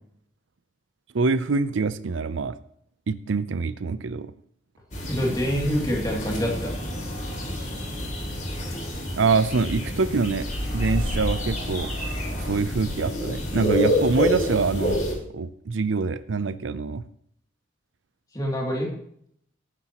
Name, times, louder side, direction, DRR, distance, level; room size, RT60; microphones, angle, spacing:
voice 1, 1.1-2.6 3.1-4.3 9.2-10.5 10.7-11.9 12.4-15.0 15.3-17.0, right 4 dB, 75° right, 14 dB, 0.6 m, -25 dB
sound 1, 4.9-15.1, equal, 40° left, 2.9 m, -28 dB
voice 2, 5.1-6.8 18.3-18.9, equal, 20° left, -1 dB, 2.7 m, -26 dB
18.0 x 9.8 x 3.0 m, 0.68 s
head